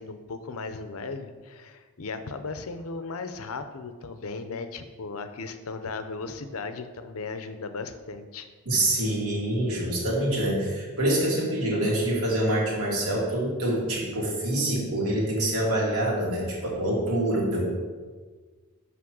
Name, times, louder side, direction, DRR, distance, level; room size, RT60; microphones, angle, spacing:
voice 1, 0.0-8.5, left 4 dB, 75° left, 9 dB, 0.7 m, -36 dB
voice 2, 8.7-17.7, right 1 dB, 80° right, -3 dB, 2.4 m, -26 dB
6.0 x 5.6 x 6.3 m, 1.4 s
head